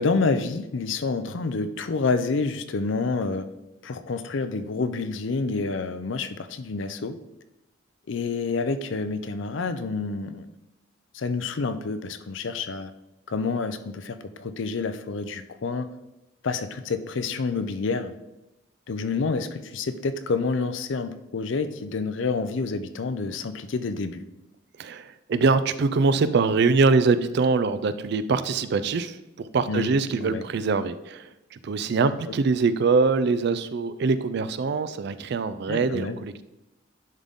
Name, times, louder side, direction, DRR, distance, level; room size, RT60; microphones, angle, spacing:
voice 1, 0.0-3.5 3.8-7.2 8.1-10.5 11.1-12.9 13.3-15.9 16.4-18.1 18.9-24.2 29.7-29.9 30.2-30.4 35.7-36.2, left 4 dB, 65° left, 10 dB, 0.5 m, -28 dB
voice 2, 24.8-36.4, right 4 dB, 55° right, 13 dB, 0.4 m, -23 dB
10.5 x 3.8 x 3.6 m, 0.96 s
head